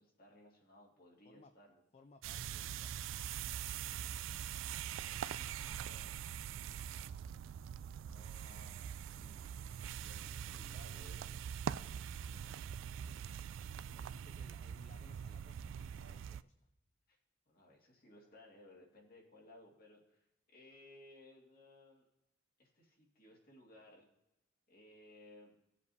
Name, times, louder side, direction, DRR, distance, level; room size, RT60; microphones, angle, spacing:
voice 1, 0.0-1.8 4.5-6.1 8.0-9.4 9.9-11.4 14.3-14.4 17.1-17.2 17.5-22.0 22.6-24.1 24.7-25.5, left 1 dB, 50° left, -2 dB, 2.1 m, -61 dB
voice 2, 1.9-2.9 12.3-12.5 13.9-16.7, left 3 dB, 35° left, 8 dB, 0.4 m, -63 dB
sound 1, 2.2-16.4, right 9 dB, 85° right, 0.3 m, -43 dB
18.0 x 7.3 x 2.7 m, 0.89 s
head